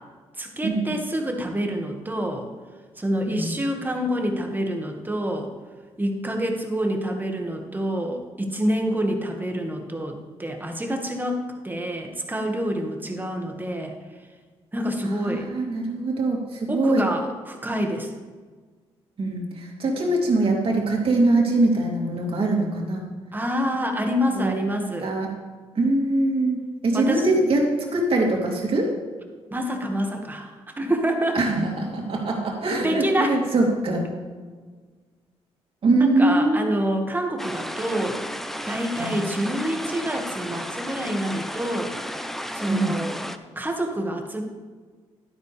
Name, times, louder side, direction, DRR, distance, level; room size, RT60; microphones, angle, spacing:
voice 1, 0.4-2.5 3.0-5.5 6.0-13.9 14.7-15.5 16.7-18.1 23.3-25.1 26.9-27.3 29.5-31.4 32.8-33.4 36.0-38.2 38.7-42.0 42.5-43.2 43.6-44.4, equal, 15° right, 3 dB, 1.8 m, -27 dB
voice 2, 15.0-17.0 19.2-23.1 24.3-24.7 25.0-25.3 25.7-28.9 31.3-34.0 35.8-36.7 39.0-39.2 42.7-43.0, right 2 dB, 55° right, 0 dB, 2.8 m, -23 dB
sound 1, 37.4-43.4, equal, 5° left, 0.7 m, -33 dB
11.5 x 10.5 x 3.4 m, 1.5 s
cardioid pair, 80°, 11 cm